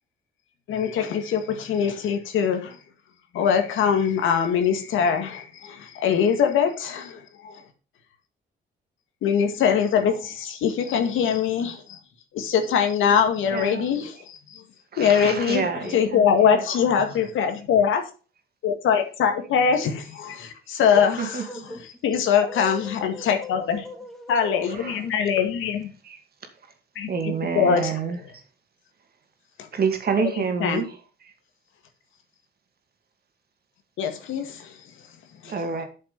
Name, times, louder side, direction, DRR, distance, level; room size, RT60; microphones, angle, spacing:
voice 1, 0.7-2.8 3.3-7.6 9.2-12.0 12.3-14.6 15.0-15.7 15.9-18.0 18.6-21.3 22.0-23.8 24.3-25.9 27.0-28.0 29.6-29.7 30.2-30.3 30.6-30.8 34.0-34.8 35.4-35.5, left 7 dB, 80° left, 2.0 m, -23 dB
voice 2, 13.5-13.9 14.9-16.6 21.2-21.4 24.7-25.0 26.0-26.2 27.1-28.4 29.7-30.9 35.4-35.9, right 6 dB, 50° right, 2.2 m, -28 dB
voice 3, 20.9-22.0 22.4-25.1, left 1 dB, ahead, 2.5 m, -39 dB
8.9 x 6.7 x 5.3 m
cardioid pair, 90°, 20 cm